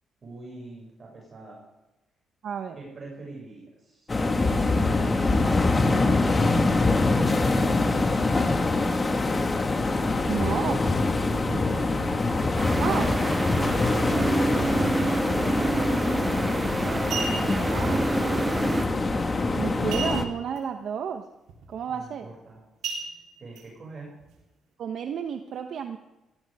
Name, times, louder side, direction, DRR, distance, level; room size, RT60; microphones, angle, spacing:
voice 1, 0.2-1.6 2.7-6.8 7.7-9.0 11.3-12.7 15.6-18.1 21.9-22.6 23.4-24.2, right 3 dB, 40° right, -3 dB, 6.5 m, -43 dB
voice 2, 2.4-2.8 10.3-10.8 12.8-13.1 17.3-17.4 17.7-18.2 19.5-21.3 21.7-22.2 24.8-26.0, right 7 dB, 65° right, 6 dB, 1.0 m, -31 dB
sound 1, 4.1-20.2, left 3 dB, 25° left, 1.7 m, -24 dB
sound 2, 12.6-18.8, right 3 dB, 25° right, 0.5 m, -28 dB
sound 3, 16.9-17.7 19.9-20.6 20.9-21.0 21.5-21.7 22.8-23.6 24.2-24.3, right 5 dB, 85° right, 3.6 m, -34 dB
17.0 x 16.5 x 3.6 m, 1.0 s
cardioid pair, 90°, 0 cm